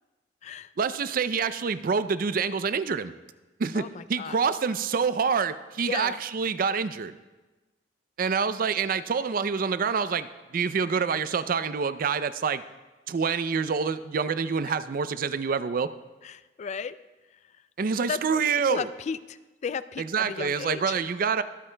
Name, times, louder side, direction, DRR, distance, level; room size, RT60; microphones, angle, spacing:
voice 1, 0.8-3.1 3.6-7.1 8.2-10.3 10.5-12.6 13.1-15.9 17.8-18.9 20.0-21.4, right 5 dB, 50° right, 13 dB, 0.4 m, -27 dB
voice 2, 3.7-4.4 5.9-6.2 16.2-17.0 18.1-18.4 18.7-21.0, left 6 dB, 40° left, 15 dB, 0.3 m, -34 dB
23.0 x 8.4 x 2.2 m, 1.2 s
head